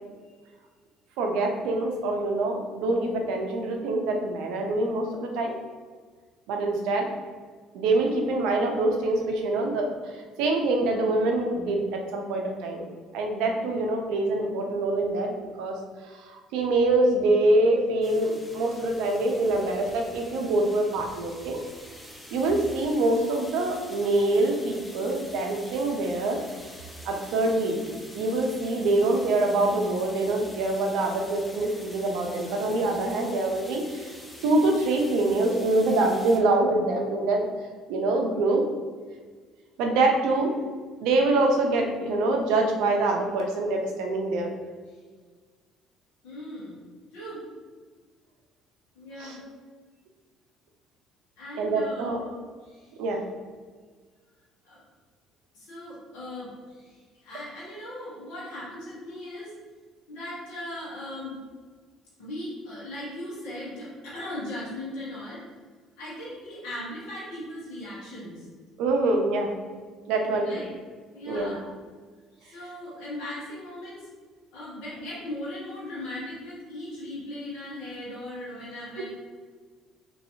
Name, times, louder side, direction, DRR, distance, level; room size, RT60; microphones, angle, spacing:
voice 1, 1.2-5.6 6.5-7.0 7.7-12.9 13.1-15.3 15.6-15.8 16.0-21.6 22.3-26.4 27.0-27.8 28.1-34.1 34.4-37.4 37.9-38.6 39.8-40.6 41.0-44.5 49.2-49.4 51.6-52.2 53.0-53.2 68.8-69.5 70.1-70.6 71.3-71.6, right 2 dB, 75° right, 2 dB, 0.5 m, -25 dB
sound 1, 18.0-36.4, equal, 10° left, 0.7 m, -46 dB
voice 2, 46.2-46.8 47.1-47.4 48.9-49.4 51.4-52.1 52.6-52.9 54.6-54.8 55.5-59.6 60.1-61.3 62.2-65.4 66.0-68.5 70.3-70.7 71.1-71.6 72.3-74.1 74.5-79.1, left 1 dB, 75° left, -8 dB, 1.3 m, -38 dB
3.0 x 2.7 x 2.7 m, 1.5 s
hypercardioid pair, 65°, 0 cm